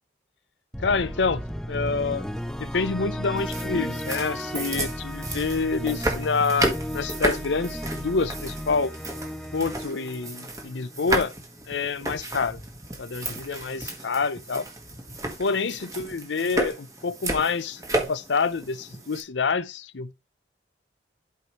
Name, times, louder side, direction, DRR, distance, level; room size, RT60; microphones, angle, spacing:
sound 1, 0.7-10.9, equal, 5° left, 0.4 m, -34 dB
voice 1, 0.8-2.3 2.6-8.9 9.5-11.3 11.7-12.6 13.0-14.7 15.4-20.1, left 4 dB, 85° left, 0.6 m, -27 dB
sound 2, 3.4-19.2, right 1 dB, 20° right, 1.4 m, -33 dB
11.5 x 4.7 x 3.0 m
head